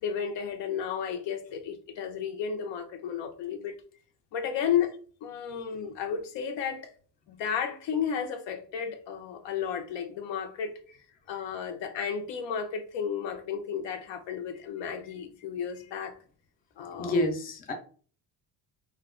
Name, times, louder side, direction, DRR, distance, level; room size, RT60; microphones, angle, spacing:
voice 1, 0.0-3.8 4.3-4.9 5.2-6.9 7.3-10.8 11.3-16.2 16.8-17.2, left 7 dB, 80° left, 0.6 m, -33 dB
voice 2, 17.0-17.7, left 1 dB, 25° left, 0.3 m, -29 dB
2.2 x 2.2 x 3.5 m
cardioid pair, 170°, 43 cm